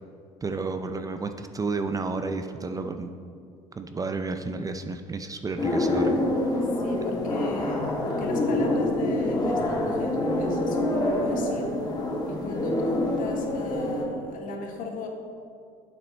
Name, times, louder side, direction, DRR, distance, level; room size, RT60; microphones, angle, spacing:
voice 1, 0.4-3.1 3.8-6.2, right 3 dB, 20° right, 7 dB, 0.4 m, -31 dB
sound 1, 5.6-14.0, left 1 dB, 25° left, 1.4 m, -26 dB
voice 2, 6.8-11.7 12.3-15.1, left 4 dB, 60° left, 2 dB, 1.3 m, -37 dB
7.7 x 5.9 x 4.2 m, 2.3 s
supercardioid pair, 75°, 16 cm